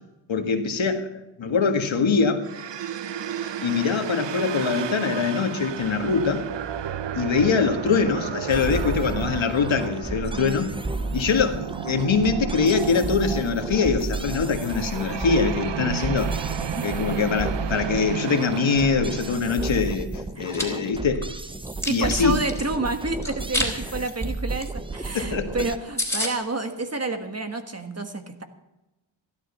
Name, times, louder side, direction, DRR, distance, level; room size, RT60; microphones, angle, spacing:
voice 1, 0.3-2.4 3.4-6.4 7.1-10.7 11.1-16.3 16.8-20.1 20.4-21.3 21.9-22.4 25.1-25.5, left 5 dB, 65° left, 5 dB, 1.7 m, -23 dB
sound 1, 2.4-19.4, right 9 dB, 60° right, 0.8 m, -33 dB
sound 2, 8.5-25.8, right 2 dB, 10° right, 0.6 m, -33 dB
voice 2, 15.9-16.2 16.7-16.8 20.4-20.5 21.8-28.4, right 2 dB, 30° right, 7 dB, 1.5 m, -30 dB
Chewing mastication, 20.3-20.6 21.1-22.6 23.2-23.7 24.0-24.2 24.6-24.7 24.9-25.0 25.4-25.5 25.7-25.8 26.0-26.3, left 1 dB, 5° left, 3.5 m, -28 dB
14.5 x 12.5 x 5.6 m, 1.0 s
wide cardioid pair, 85°, 49 cm